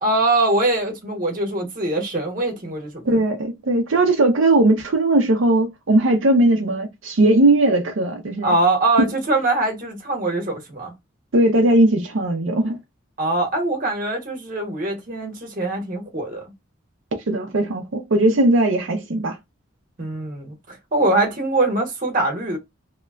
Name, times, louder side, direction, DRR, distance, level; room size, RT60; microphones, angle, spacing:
voice 1, 0.0-3.0 8.4-10.9 13.2-16.5 20.0-22.6, right 2 dB, 45° right, 1.1 m, -22 dB
voice 2, 3.0-8.5 9.0-9.1 11.3-12.8 17.3-19.4, right 2 dB, 80° right, 0.6 m, -18 dB
2.8 x 2.2 x 2.4 m
head